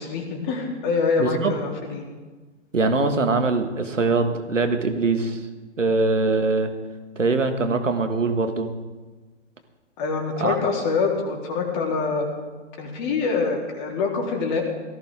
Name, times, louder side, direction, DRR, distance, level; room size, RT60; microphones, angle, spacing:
voice 1, 0.0-2.0 10.0-12.3 12.8-14.6, left 4 dB, 40° left, 0 dB, 3.3 m, -25 dB
voice 2, 1.2-1.5 2.7-5.4 5.8-6.7 7.2-8.7 10.4-10.6, right 3 dB, 90° right, 7 dB, 1.7 m, -22 dB
17.5 x 14.5 x 3.7 m, 1.3 s
figure-of-eight pair, 120°, 37 cm